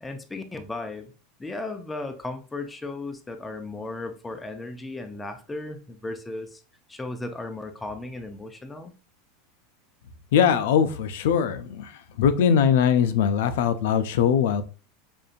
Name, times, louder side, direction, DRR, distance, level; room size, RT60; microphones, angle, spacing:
voice 1, 0.0-1.1 1.4-6.6 6.9-8.9, left 2 dB, 10° left, 0.4 m, -35 dB
voice 2, 10.3-11.9 12.2-14.6, left 8 dB, 75° left, 0.4 m, -21 dB
5.1 x 2.6 x 2.4 m
supercardioid pair, 155°, 0 cm